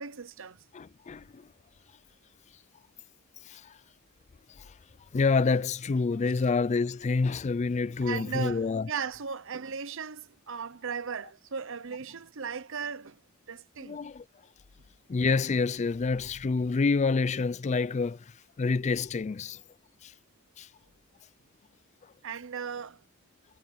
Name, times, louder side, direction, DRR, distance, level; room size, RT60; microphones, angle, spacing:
voice 1, 0.0-0.6 8.0-13.2 13.5-14.1 22.2-23.0, right 6 dB, 65° right, 0.9 m, -37 dB
voice 2, 0.7-1.5 3.4-3.8 4.5-4.8 5.1-8.9 13.8-14.2 15.1-19.6 20.0-20.1 20.6-20.7 22.0-22.1, left 4 dB, 35° left, 0.4 m, -28 dB
head